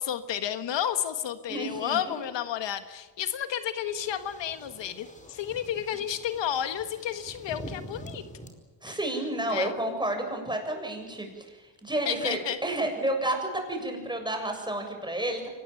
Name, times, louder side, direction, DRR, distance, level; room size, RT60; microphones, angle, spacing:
voice 1, 0.0-8.2 8.8-9.0 9.5-9.8 12.0-12.6, left 10 dB, 80° left, 10 dB, 1.6 m, -31 dB
voice 2, 1.5-2.0 8.8-15.5, right 1 dB, 10° right, 3 dB, 7.2 m, -31 dB
sound 1, 3.8-8.5, equal, 15° left, 5.1 m, -45 dB
24.5 x 20.0 x 9.2 m, 1.3 s
cardioid pair, 90°, 43 cm